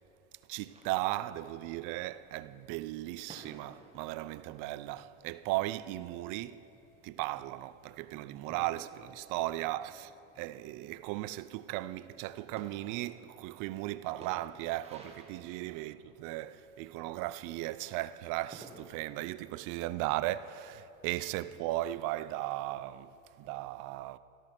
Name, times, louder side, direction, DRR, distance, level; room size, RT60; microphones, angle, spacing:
voice 1, 0.5-6.6 7.0-10.1 10.4-24.2, right 16 dB, 55° right, 0.6 m, -36 dB
sound 1, 0.7-18.9, right 3 dB, 15° right, 2.0 m, -58 dB
13.5 x 13.0 x 6.0 m
supercardioid pair, 120°, 38 cm